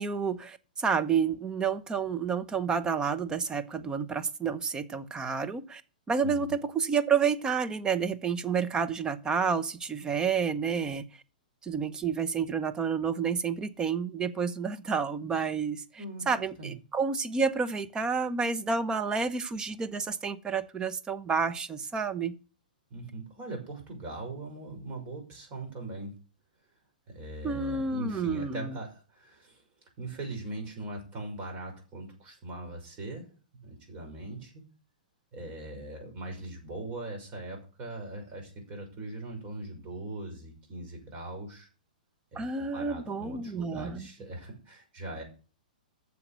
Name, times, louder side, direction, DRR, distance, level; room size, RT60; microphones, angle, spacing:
voice 1, 0.0-5.8 6.1-11.0 11.6-22.4 27.4-28.8 42.3-44.1, right 5 dB, 15° right, 0.9 m, -30 dB
voice 2, 6.2-6.5 16.0-16.3 16.6-16.7 22.9-26.1 27.1-29.6 30.0-33.3 33.5-34.6 35.3-41.7 42.3-45.2, right 2 dB, 30° right, 6.1 m, -40 dB
10.0 x 7.2 x 6.7 m
figure-of-eight pair, 110°, 5 cm